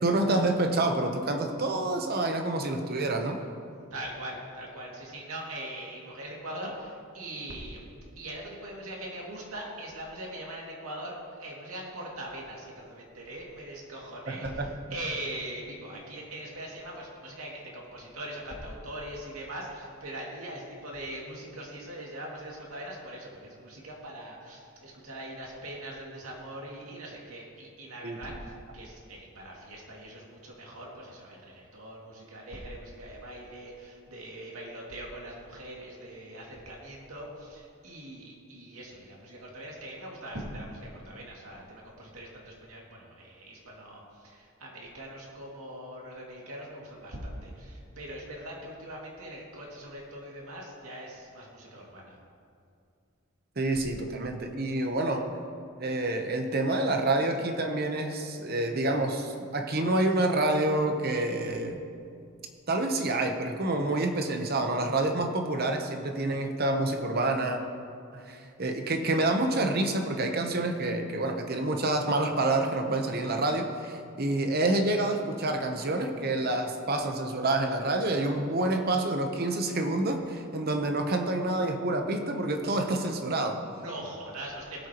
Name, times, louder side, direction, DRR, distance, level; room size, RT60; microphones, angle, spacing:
voice 1, 0.0-3.4 14.3-14.7 28.0-28.2 53.6-55.3 55.8-61.8 62.7-67.6 68.1-83.6, right 2 dB, 45° right, 4 dB, 0.9 m, -28 dB
voice 2, 3.9-7.9 8.1-52.2 83.7-84.9, right 1 dB, 80° right, -3 dB, 2.4 m, -41 dB
18.0 x 8.0 x 3.0 m, 2.4 s
head